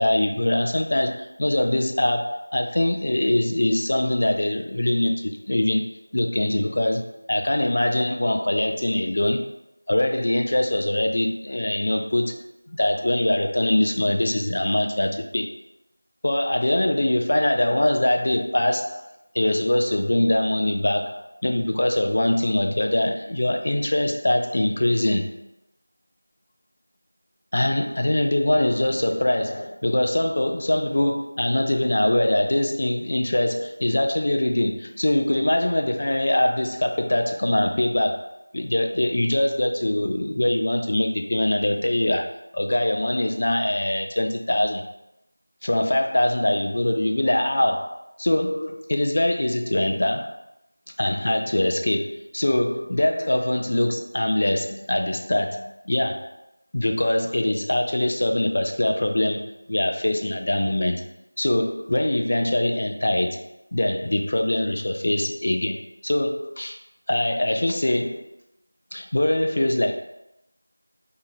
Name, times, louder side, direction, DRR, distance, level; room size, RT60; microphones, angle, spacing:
voice 1, 0.0-5.8 6.1-9.5 9.9-12.4 12.7-15.5 16.2-19.1 19.3-25.4 27.5-42.3 42.5-44.8 45.6-50.4 51.0-56.3 56.7-61.1 61.4-63.4 63.7-66.8 67.1-68.3 68.9-69.9, left 1 dB, 35° left, 4 dB, 0.3 m, -23 dB
2.7 x 2.5 x 3.9 m, 0.87 s
figure-of-eight pair, 175°, 0 cm